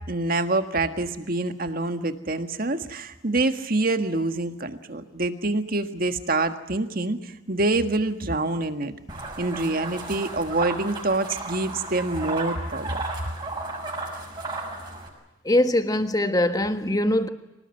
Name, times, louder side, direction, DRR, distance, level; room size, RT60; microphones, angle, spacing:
voice 1, 0.1-8.9 9.4-13.0, right 2 dB, 45° right, 1.7 m, -26 dB
sound 1, 9.1-15.1, right 2 dB, 20° right, 6.4 m, -34 dB
voice 2, 15.4-17.3, left 1 dB, 20° left, 1.4 m, -22 dB
25.5 x 19.0 x 9.1 m
head